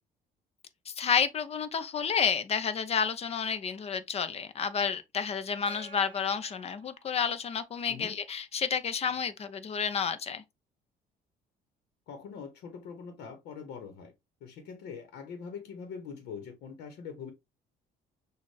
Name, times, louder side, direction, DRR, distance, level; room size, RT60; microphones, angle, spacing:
voice 1, 0.9-10.4, left 6 dB, 35° left, 0.7 m, -30 dB
Gong, 5.7-7.7, right 2 dB, 30° right, 1.4 m, -52 dB
voice 2, 12.1-14.1 14.4-17.3, left 6 dB, 80° left, 1.1 m, -43 dB
6.4 x 2.5 x 3.2 m
cardioid pair, 110°, 17 cm